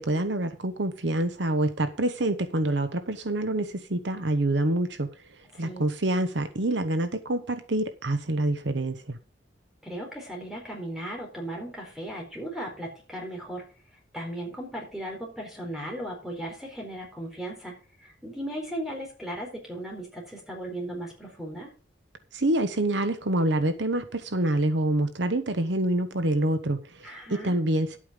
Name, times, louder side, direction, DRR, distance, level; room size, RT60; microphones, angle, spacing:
voice 1, 0.0-5.1 5.6-9.2 22.3-28.0, right 1 dB, 70° right, 10 dB, 1.0 m, -26 dB
voice 2, 5.5-5.8 9.8-13.7 14.1-17.8 18.0-21.7 27.0-27.6, right 1 dB, ahead, -1 dB, 4.2 m, -37 dB
11.0 x 8.6 x 5.1 m, 0.35 s
head